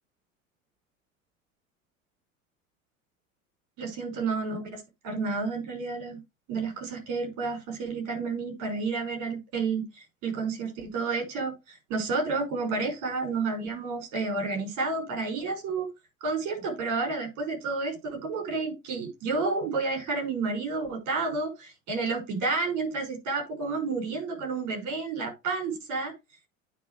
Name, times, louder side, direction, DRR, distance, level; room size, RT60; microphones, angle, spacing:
voice 1, 3.8-6.2 6.5-15.9 16.2-26.1, right 4 dB, 50° right, 5.7 m, -30 dB
9.4 x 5.1 x 4.8 m
figure-of-eight pair, 70°, 40 cm